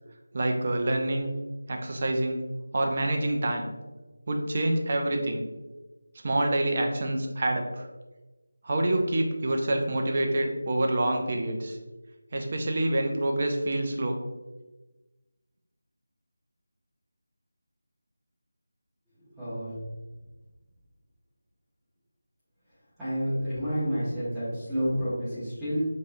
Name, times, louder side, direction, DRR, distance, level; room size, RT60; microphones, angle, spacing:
voice 1, 0.3-1.3 1.7-2.4 2.7-3.7 4.3-5.4 6.2-7.9 8.6-11.8 12.3-14.2, right 1 dB, 25° right, 3 dB, 0.4 m, -27 dB
voice 2, 19.2-19.8 23.0-25.9, equal, 5° right, -16 dB, 0.8 m, -30 dB
5.6 x 3.1 x 2.6 m, 1.2 s
figure-of-eight pair, 180°, 0 cm